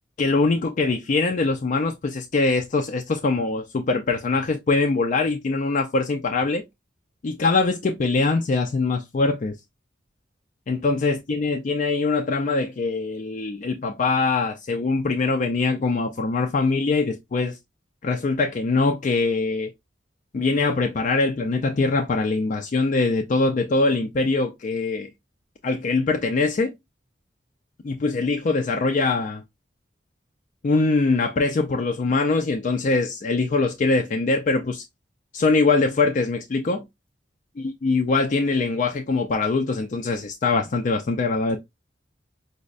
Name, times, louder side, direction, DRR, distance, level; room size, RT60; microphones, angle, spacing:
voice 1, 0.2-6.6 7.2-9.5 10.7-17.6 18.0-19.7 20.3-25.1 25.6-26.7 27.8-29.4 30.6-34.8 35.3-36.8 37.6-41.6, left 3 dB, 45° left, 0.4 m, -23 dB
5.1 x 2.1 x 2.4 m
head